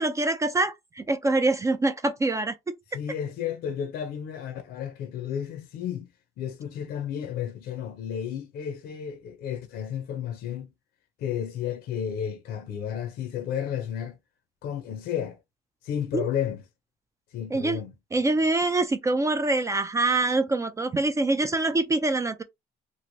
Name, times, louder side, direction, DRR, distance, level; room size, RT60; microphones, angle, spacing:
voice 1, 0.0-2.6 16.1-16.3 17.5-17.8 18.1-22.4, right 2 dB, 20° right, 0.3 m, -25 dB
voice 2, 2.9-6.1 6.4-10.7 11.2-14.2 14.6-15.4 15.8-16.6 17.3-17.9, left 9 dB, 70° left, 0.6 m, -32 dB
3.0 x 2.5 x 2.6 m
cardioid pair, 110°, 17 cm